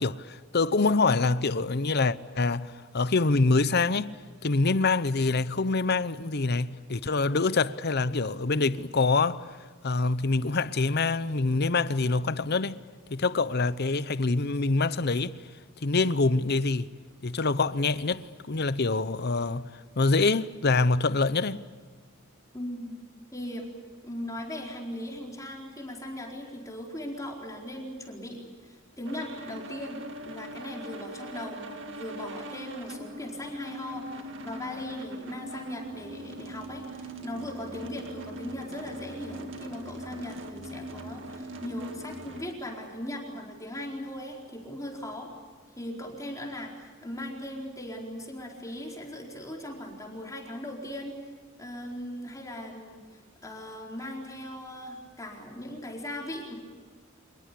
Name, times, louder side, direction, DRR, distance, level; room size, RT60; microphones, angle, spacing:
voice 1, 0.0-4.1 4.4-9.5 9.8-12.8 13.1-15.3 15.8-16.9 17.2-19.6 20.0-21.6, left 3 dB, 50° left, 0.8 m, -25 dB
voice 2, 22.5-23.7 24.0-45.3 45.8-51.2 51.6-56.5, left 1 dB, 15° left, 4.4 m, -39 dB
sound 1, 29.0-42.5, right 1 dB, 65° right, 2.1 m, -41 dB
27.0 x 21.0 x 8.4 m
head